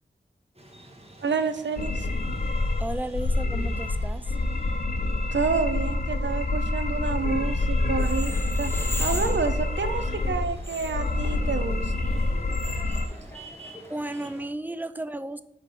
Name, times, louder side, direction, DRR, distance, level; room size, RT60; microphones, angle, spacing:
sound 1, 0.5-14.5, right 1 dB, 30° right, 1.1 m, -50 dB
voice 1, 1.2-2.1 5.3-8.7 9.0-11.9, right 5 dB, 75° right, 10 dB, 0.5 m, -29 dB
sound 2, 1.8-13.1, left 2 dB, 45° left, 0.5 m, -27 dB
voice 2, 2.8-4.3 13.9-15.4, right 1 dB, 10° right, 13 dB, 0.3 m, -34 dB
sound 3, 7.9-14.4, left 1 dB, 10° left, 0.8 m, -40 dB
5.6 x 3.3 x 5.2 m, 0.80 s
wide cardioid pair, 50°, 19 cm